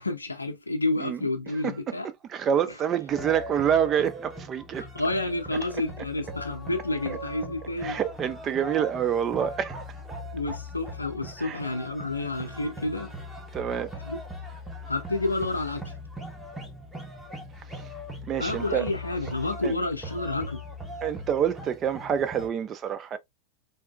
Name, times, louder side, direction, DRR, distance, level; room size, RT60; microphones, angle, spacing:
voice 1, 0.0-2.1 4.8-8.0 10.3-13.1 14.0-14.2 14.9-15.8 18.4-20.6, left 2 dB, 80° left, 0.6 m, -30 dB
voice 2, 1.6-2.0 2.3-4.9 7.1-7.2 7.8-9.8 11.4-11.6 13.5-13.9 17.7-17.9 18.3-18.9 19.6-19.7 21.0-23.2, right 8 dB, 25° right, 0.4 m, -27 dB
sound 1, 3.1-22.5, left 1 dB, 10° right, 0.9 m, -40 dB
3.5 x 2.6 x 2.4 m
figure-of-eight pair, 90°, 0 cm